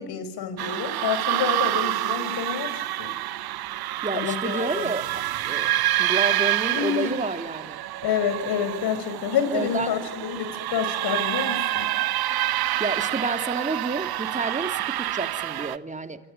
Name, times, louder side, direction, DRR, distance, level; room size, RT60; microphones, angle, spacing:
voice 1, 0.0-3.1 4.1-4.9 6.7-7.1 8.0-11.9, left 8 dB, 65° left, 11 dB, 5.2 m, -28 dB
sound 1, 0.6-15.8, right 14 dB, 60° right, 1.1 m, -27 dB
voice 2, 4.0-5.7 6.0-7.8 9.5-10.0 12.8-16.2, right 3 dB, 15° right, 8 dB, 2.7 m, -30 dB
26.0 x 26.0 x 8.2 m, 1.1 s
supercardioid pair, 75°, 43 cm